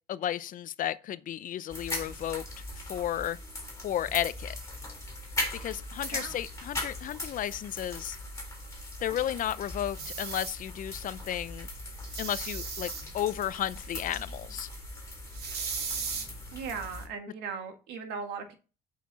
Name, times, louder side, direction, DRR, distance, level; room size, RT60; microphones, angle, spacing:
voice 1, 0.1-2.4 2.9-3.4 3.8-4.6 5.6-8.2 9.0-11.7 12.2-14.7, left 11 dB, 55° left, 0.6 m, -33 dB
sound 1, 1.7-17.1, left 1 dB, 15° left, 3.8 m, -39 dB
sound 2, 9.9-10.5 12.0-13.0 15.3-16.3, right 6 dB, 70° right, 2.8 m, -36 dB
voice 2, 16.5-18.5, right 5 dB, 85° right, 1.9 m, -38 dB
8.5 x 5.8 x 4.1 m
cardioid pair, 110°, 17 cm